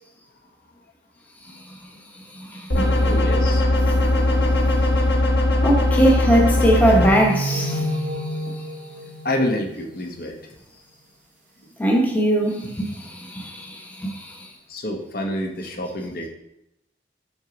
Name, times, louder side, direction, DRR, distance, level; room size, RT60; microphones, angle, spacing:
sound 1, 2.7-7.1, left 1 dB, 75° left, 1.2 m, -19 dB
voice 1, 2.8-3.6 9.2-10.4 14.7-16.3, left 1 dB, 55° left, 1.0 m, -28 dB
voice 2, 5.6-7.9 11.8-14.4, right 1 dB, 10° left, 0.8 m, -20 dB
sound 2, 6.9-10.3, right 1 dB, 45° right, 0.5 m, -29 dB
6.2 x 4.8 x 3.9 m
head